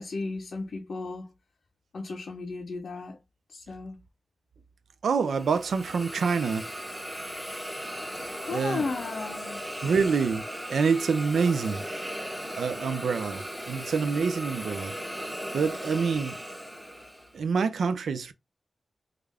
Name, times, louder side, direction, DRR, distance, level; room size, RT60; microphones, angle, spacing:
voice 1, 0.0-1.3 1.9-3.2 3.5-4.0 8.5-9.6, left 3 dB, 75° left, 0.5 m, -34 dB
voice 2, 5.0-6.7 8.5-8.8 9.8-11.8 12.5-14.9 15.5-16.4 17.3-18.3, right 5 dB, 85° right, 0.4 m, -26 dB
Hiss, 5.2-17.3, equal, 5° right, 1.2 m, -37 dB
3.2 x 2.4 x 3.3 m
cardioid pair, 40°, 0 cm